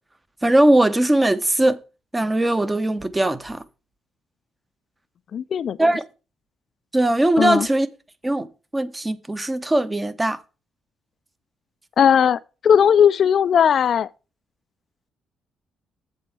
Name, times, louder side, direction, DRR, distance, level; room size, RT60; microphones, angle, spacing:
voice 1, 0.4-1.8 2.1-3.6 5.8-6.0 6.9-7.9 8.2-8.5 8.7-10.4, right 1 dB, 15° right, 0.8 m, -19 dB
voice 2, 5.3-5.9 7.4-7.7 12.0-14.1, left 8 dB, 60° left, 0.3 m, -18 dB
7.6 x 4.3 x 7.0 m
cardioid pair, 90°, 0 cm